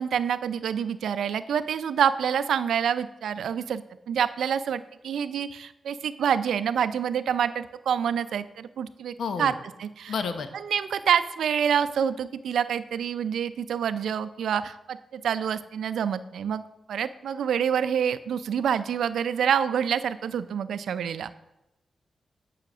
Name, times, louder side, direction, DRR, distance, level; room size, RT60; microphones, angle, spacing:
voice 1, 0.0-9.5 9.8-10.1 10.5-16.6 16.9-21.3, right 8 dB, 85° right, 13 dB, 0.4 m, -27 dB
voice 2, 9.2-9.5 10.1-10.5, left 5 dB, 75° left, 8 dB, 0.8 m, -30 dB
9.1 x 5.7 x 6.0 m, 0.95 s
cardioid pair, 70°, 0 cm